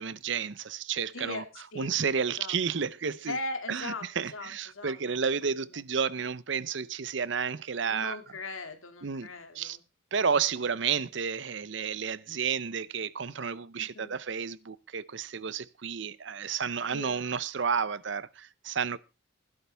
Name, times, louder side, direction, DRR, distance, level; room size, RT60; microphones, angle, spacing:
voice 1, 0.0-1.4 1.8-3.4 3.7-8.2 9.0-9.3 9.6-9.8 10.1-19.0, right 6 dB, 65° right, 0.6 m, -31 dB
voice 2, 1.1-2.0 2.4-2.6 3.3-5.8 7.9-9.8 13.8-14.2 16.9-17.2, left 2 dB, 90° left, 2.3 m, -40 dB
16.5 x 11.5 x 3.4 m
head